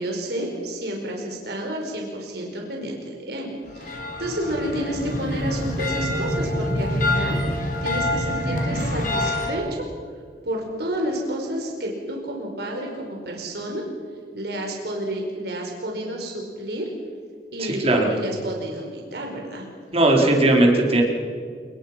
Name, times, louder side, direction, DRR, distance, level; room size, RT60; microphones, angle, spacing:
voice 1, 0.0-3.5 3.7-9.8 10.4-13.8 14.3-16.9 17.5-19.7, right 1 dB, 65° right, 0 dB, 4.9 m, -30 dB
sound 1, 3.7-9.5, left 1 dB, 50° left, 4.3 m, -26 dB
voice 2, 17.6-18.1 19.9-21.0, right 1 dB, 35° right, 0 dB, 4.2 m, -18 dB
29.0 x 20.5 x 5.9 m, 2.1 s
head